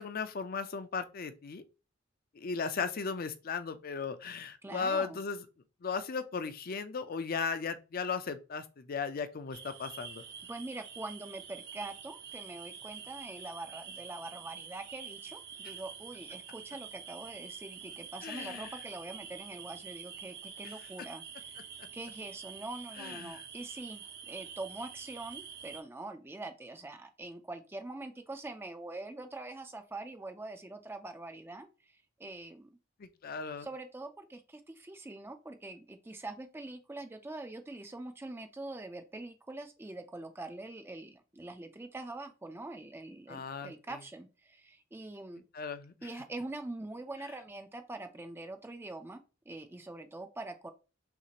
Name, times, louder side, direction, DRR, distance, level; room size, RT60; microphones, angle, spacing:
voice 1, 0.0-1.6 2.3-5.5 5.8-10.2 18.2-18.7 21.8-21.9 23.0-23.4 33.0-33.7 43.3-44.0 45.5-46.1, left 5 dB, 45° left, 0.5 m, -36 dB
voice 2, 4.6-5.2 10.5-21.6 21.9-32.8 33.6-45.4 46.0-49.2 49.5-50.7, right 2 dB, 10° right, 0.4 m, -44 dB
sound 1, 9.5-25.8, right 7 dB, 55° right, 0.7 m, -47 dB
5.8 x 2.4 x 2.9 m
head